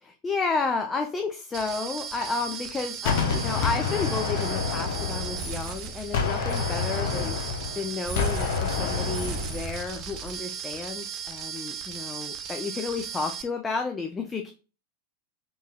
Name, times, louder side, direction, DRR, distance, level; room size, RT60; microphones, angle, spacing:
voice 1, 0.0-14.5, left 4 dB, 15° left, 4 dB, 0.4 m, -32 dB
sound 1, 1.5-13.4, right 7 dB, 35° right, 0.5 m, -36 dB
Gunshot gunfire, 3.1-5.8 6.1-9.7, left 5 dB, 55° left, 0.7 m, -28 dB
4.5 x 2.7 x 2.2 m, 0.35 s
figure-of-eight pair, 90°, 0 cm